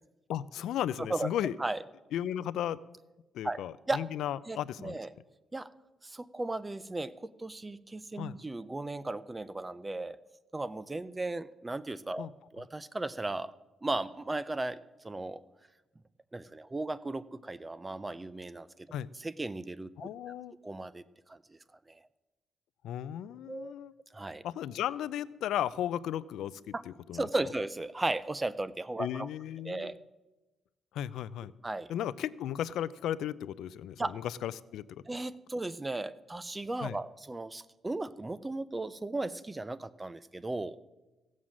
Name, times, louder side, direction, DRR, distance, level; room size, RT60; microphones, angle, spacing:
voice 1, 0.3-1.5 2.1-2.8 3.3-5.0 8.2-8.4 12.2-12.3 18.9-19.1 20.0-20.5 22.8-23.9 24.4-27.3 29.0-29.9 30.9-31.5 31.9-35.0 36.8-37.0, left 11 dB, 80° left, 17 dB, 0.4 m, -35 dB
voice 2, 1.0-1.3 1.6-1.8 3.4-4.0 4.5-5.1 5.5-5.7 6.0-10.2 10.5-12.3 12.5-13.5 13.8-14.8 15.0-15.4 16.3-18.9 19.2-20.1 20.6-21.0 21.3-21.6 21.9-22.0 23.5-23.7 24.1-24.4 26.7-26.8 27.1-29.3 29.6-30.0 31.6-31.9 34.0-34.1 35.1-40.8, right 2 dB, 15° right, 16 dB, 0.4 m, -36 dB
16.5 x 7.4 x 6.2 m, 1.1 s
cardioid pair, 155°, 0 cm